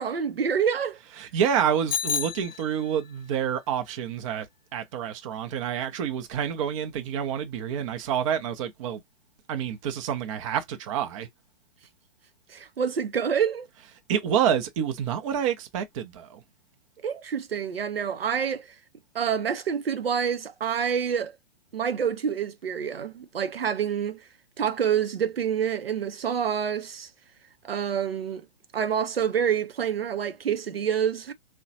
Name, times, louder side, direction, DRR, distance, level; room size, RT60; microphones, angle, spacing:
voice 1, 0.0-1.0 12.5-13.7 17.0-18.7 19.1-21.3 21.7-24.2 24.6-27.1 27.6-28.5 28.7-31.3, right 7 dB, 80° right, 0.6 m, -27 dB
voice 2, 1.2-4.5 4.7-9.0 9.5-11.3 14.1-16.4, right 8 dB, 35° right, 0.6 m, -28 dB
Bicycle bell, 1.9-3.1, left 7 dB, 50° left, 0.5 m, -31 dB
3.7 x 2.1 x 2.7 m
figure-of-eight pair, 120°, 29 cm